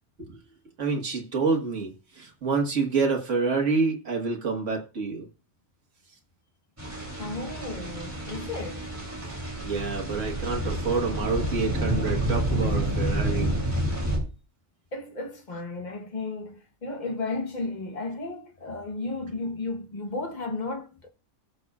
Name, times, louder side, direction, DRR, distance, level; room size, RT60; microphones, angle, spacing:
voice 1, 0.8-5.3 9.6-13.5, right 4 dB, 85° right, 2.0 m, -27 dB
sound 1, 6.8-14.2, right 1 dB, 10° right, 3.1 m, -29 dB
voice 2, 7.2-8.9 14.9-21.1, left 3 dB, 40° left, 1.3 m, -34 dB
18.0 x 6.7 x 2.4 m
omnidirectional pair, 1.2 m